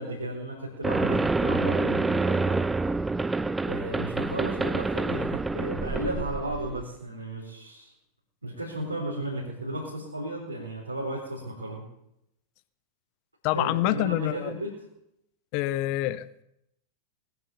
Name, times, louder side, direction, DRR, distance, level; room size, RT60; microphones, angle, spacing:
voice 1, 0.0-2.7 3.6-7.9 8.4-11.8 13.5-14.7, right 1 dB, 85° right, -5 dB, 4.0 m, -34 dB
sound 1, 0.8-6.8, right 3 dB, 10° right, 0.5 m, -27 dB
voice 2, 13.4-14.5 15.5-16.4, left 15 dB, 45° left, 16 dB, 0.8 m, -27 dB
19.5 x 9.8 x 7.1 m, 0.80 s
figure-of-eight pair, 90°, 0 cm